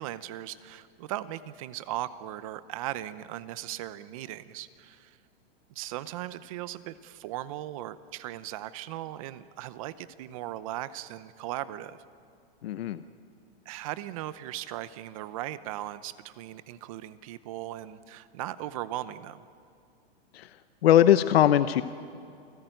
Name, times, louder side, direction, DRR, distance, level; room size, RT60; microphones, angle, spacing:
voice 1, 0.0-5.2 5.7-12.0 13.7-19.4, right 14 dB, 35° right, 15 dB, 0.7 m, -38 dB
voice 2, 12.6-13.0 20.3-20.5 20.8-21.8, left 11 dB, 70° left, 12 dB, 0.9 m, -20 dB
28.5 x 15.5 x 9.1 m, 2.5 s
hypercardioid pair, 160°, 31 cm